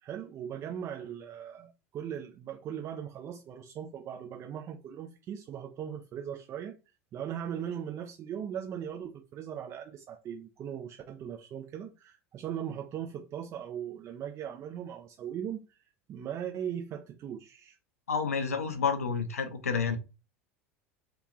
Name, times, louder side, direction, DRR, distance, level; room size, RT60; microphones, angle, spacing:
voice 1, 0.0-6.8 7.1-15.8 16.1-17.8, right 9 dB, 40° right, 0.5 m, -39 dB
voice 2, 18.1-20.0, left 5 dB, 85° left, 0.5 m, -29 dB
2.9 x 2.3 x 2.4 m
hypercardioid pair, 80°, 8 cm